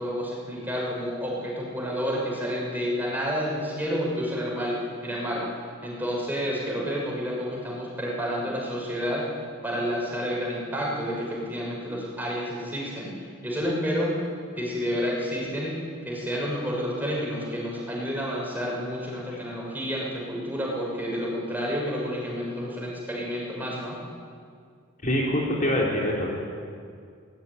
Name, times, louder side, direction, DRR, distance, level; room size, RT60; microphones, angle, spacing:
voice 1, 0.0-5.4 5.8-9.2 9.6-14.2 14.6-15.7 16.0-24.0, equal, 10° right, -3 dB, 6.4 m, -30 dB
voice 2, 25.0-26.4, left 1 dB, 40° left, -3 dB, 3.7 m, -24 dB
22.5 x 19.5 x 9.8 m, 2.2 s
head